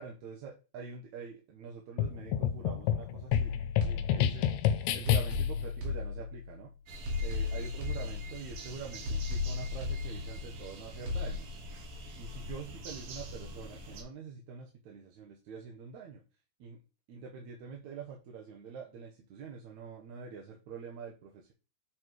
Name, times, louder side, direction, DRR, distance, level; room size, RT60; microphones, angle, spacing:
voice 1, 0.0-3.5 3.8-4.5 4.9-6.7 7.2-11.5 12.2-16.2 16.6-16.8 17.1-21.5, right 5 dB, 70° right, 0 dB, 2.3 m, -45 dB
sound 1, 2.0-5.6, left 10 dB, 75° left, 1.9 m, -29 dB
sound 2, 3.3-4.6 5.1-6.6 7.1-8.6 9.1-10.6 11.1-11.3, left 4 dB, 55° right, 2.4 m, -35 dB
sound 3, 6.9-14.0, left 1 dB, 90° right, 3.3 m, -43 dB
7.7 x 4.2 x 4.6 m, 0.31 s
omnidirectional pair, 3.6 m